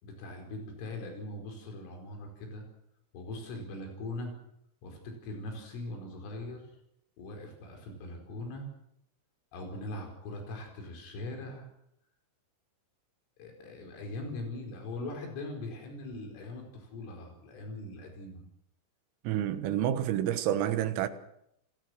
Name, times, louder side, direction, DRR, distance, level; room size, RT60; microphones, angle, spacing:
voice 1, 0.0-2.6 3.1-4.3 4.8-6.7 7.2-8.7 9.5-11.7 13.4-18.4, left 2 dB, 75° left, 7.4 m, -41 dB
voice 2, 19.3-21.1, right 11 dB, 90° right, 4.1 m, -29 dB
29.0 x 20.0 x 6.4 m
omnidirectional pair, 5.8 m